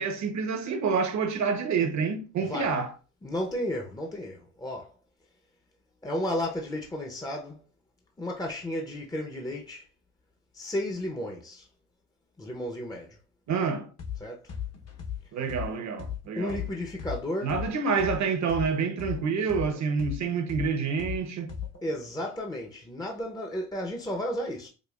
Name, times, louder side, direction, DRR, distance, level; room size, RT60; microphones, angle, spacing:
voice 1, 0.0-2.9 13.5-13.9 15.3-16.6 17.4-21.5, right 5 dB, 50° right, 0.9 m, -28 dB
voice 2, 2.4-2.8 3.2-4.9 6.0-7.6 8.2-9.8 10.5-11.7 12.4-13.2 14.2-14.5 16.4-17.6 21.8-24.7, left 1 dB, 10° left, 0.7 m, -33 dB
sound 1, 14.0-14.2 14.5-18.2 18.5-21.9, left 8 dB, 45° left, 1.0 m, -36 dB
5.0 x 2.3 x 2.4 m
supercardioid pair, 85°, 36 cm